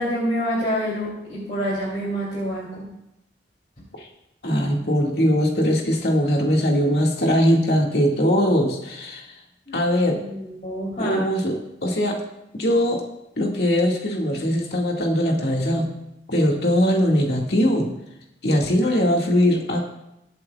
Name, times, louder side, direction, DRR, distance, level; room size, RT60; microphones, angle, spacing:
voice 1, 0.0-2.8 9.7-9.8 10.1-11.2, equal, 40° left, -7 dB, 3.1 m, -27 dB
voice 2, 4.4-9.3 9.7-10.2 11.0-12.2 12.5-13.0 13.4-15.9 16.3-17.9 18.4-19.8, equal, 65° left, 0 dB, 2.1 m, -21 dB
22.5 x 8.2 x 2.4 m, 0.86 s
head